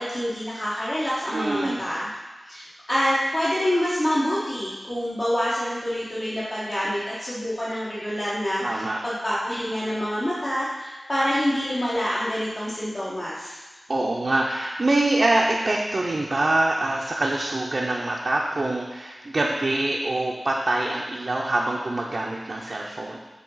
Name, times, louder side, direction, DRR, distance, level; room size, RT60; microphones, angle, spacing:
voice 1, 0.0-2.1 2.4-13.6, equal, 40° left, -10 dB, 1.4 m, -26 dB
voice 2, 1.3-1.8 8.6-9.0 13.9-23.2, right 2 dB, 55° right, -2 dB, 0.6 m, -25 dB
7.6 x 3.0 x 5.5 m, 1.2 s
cardioid pair, 50°, 0 cm